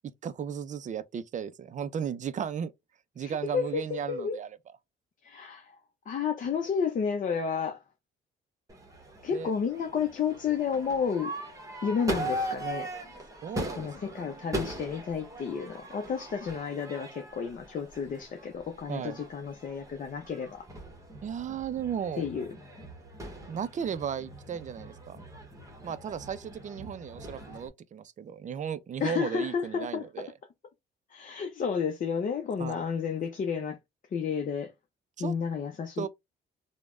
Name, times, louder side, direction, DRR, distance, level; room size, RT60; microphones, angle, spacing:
voice 1, 0.2-2.7 3.2-4.5 9.3-9.5 13.4-13.9 18.9-19.2 21.2-22.3 23.5-25.2 25.8-30.3 32.6-32.8 35.2-35.3 36.0-36.1, right 8 dB, 40° right, 0.4 m, -35 dB
voice 2, 3.2-4.4 5.2-5.7 6.1-7.8 9.2-11.3 11.8-12.9 13.8-20.6 22.2-22.5 29.0-30.2 31.1-33.8 34.1-34.7 35.2-36.1, left 6 dB, 40° left, 0.6 m, -31 dB
Crowd / Fireworks, 8.7-27.7, right 1 dB, 15° right, 1.0 m, -40 dB
3.2 x 2.1 x 2.4 m
cardioid pair, 90°, 20 cm